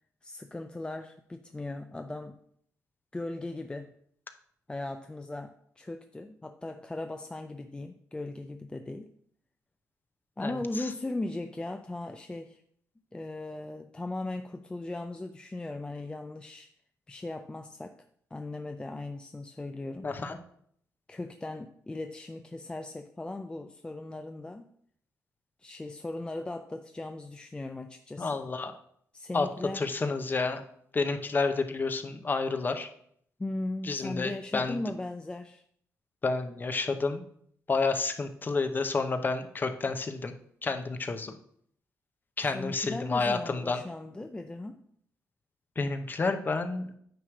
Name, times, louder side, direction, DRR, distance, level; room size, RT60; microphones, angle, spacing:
voice 1, 0.2-2.4 3.1-3.9 4.7-9.1 10.4-12.6 13.1-16.7 17.1-18.0 18.3-20.1 21.1-24.7 25.6-28.3 29.1-29.9 33.4-35.6 42.5-44.8, left 2 dB, 15° left, 7 dB, 0.4 m, -38 dB
voice 2, 10.4-10.8 20.0-20.4 28.2-28.7 29.3-29.5 29.7-30.6 30.9-32.9 33.8-34.8 36.2-37.2 37.7-40.3 40.6-41.4 42.4-43.8 45.8-46.9, left 4 dB, 35° left, 7 dB, 0.8 m, -30 dB
9.2 x 3.2 x 6.2 m, 0.66 s
cardioid pair, 95°, 6 cm